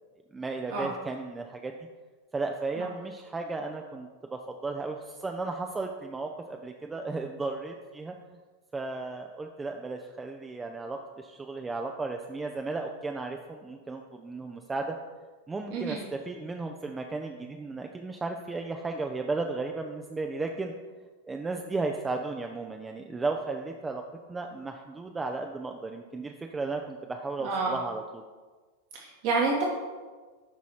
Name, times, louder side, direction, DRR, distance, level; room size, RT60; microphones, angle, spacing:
voice 1, 0.3-1.8 2.3-8.1 8.7-14.9 15.5-20.7 21.3-24.0 24.3-28.2, right 3 dB, 15° right, 3 dB, 0.5 m, -34 dB
voice 2, 15.7-16.0 27.4-27.8 29.0-29.6, right 4 dB, 45° right, -2 dB, 1.2 m, -28 dB
11.0 x 4.1 x 4.3 m, 1.4 s
figure-of-eight pair, 90°, 0 cm